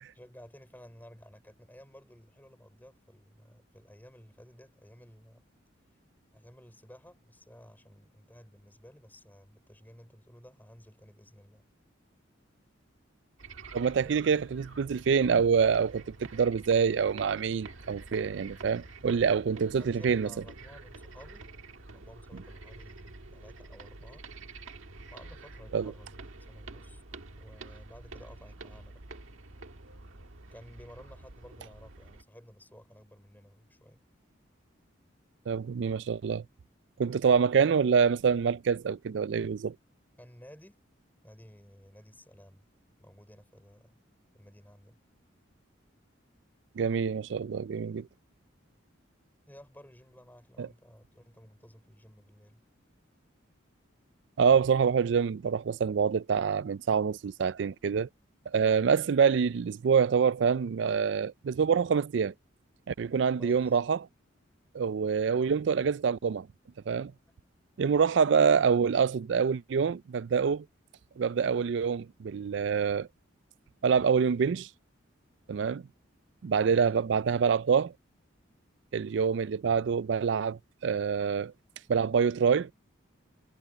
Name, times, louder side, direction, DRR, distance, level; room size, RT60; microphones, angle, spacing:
voice 1, 0.1-5.5 6.3-11.6 14.0-14.7 19.5-21.5 21.9-24.2 25.1-26.2 26.5-27.0 27.4-29.0 30.5-34.0 40.2-40.8 41.2-42.7 43.0-44.0 44.3-45.0 49.5-52.6 63.4-63.8 76.7-77.0, equal, 10° left, 5.6 m, -54 dB
sound 1, 13.4-32.2, right 3 dB, 90° right, 1.6 m, -48 dB
voice 2, 13.7-20.3 25.7-25.9 35.5-36.4 37.0-39.7 46.8-48.1 50.6-50.7 54.4-58.1 58.5-62.3 62.9-64.0 64.7-66.5 66.9-67.1 67.8-70.7 71.2-73.1 73.8-74.7 75.5-75.8 76.4-77.9 78.9-81.5 81.9-82.7, right 6 dB, 65° right, 0.4 m, -26 dB
head